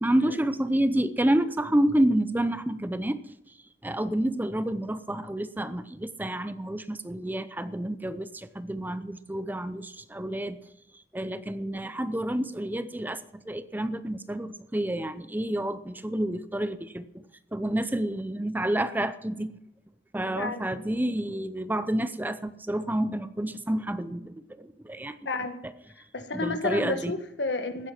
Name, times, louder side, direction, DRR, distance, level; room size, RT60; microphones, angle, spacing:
voice 1, 0.0-3.2 3.8-10.6 11.1-13.2 13.5-17.0 17.5-19.5 20.1-25.2 25.6-25.7 26.3-27.1, right 1 dB, 10° right, 13 dB, 0.6 m, -29 dB
voice 2, 20.4-20.7 25.2-25.6 26.1-27.9, left 3 dB, 80° left, 7 dB, 1.5 m, -31 dB
15.5 x 9.8 x 6.0 m, 0.80 s
head